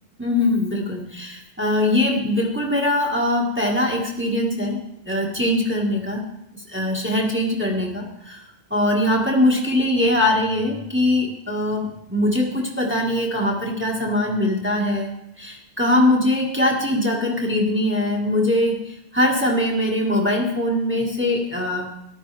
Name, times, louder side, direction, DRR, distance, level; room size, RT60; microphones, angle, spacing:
voice 1, 0.2-6.3 6.5-8.4 8.7-15.1 15.4-21.9, left 1 dB, 10° right, -2 dB, 1.6 m, -22 dB
14.0 x 11.0 x 3.4 m, 0.84 s
omnidirectional pair, 1.1 m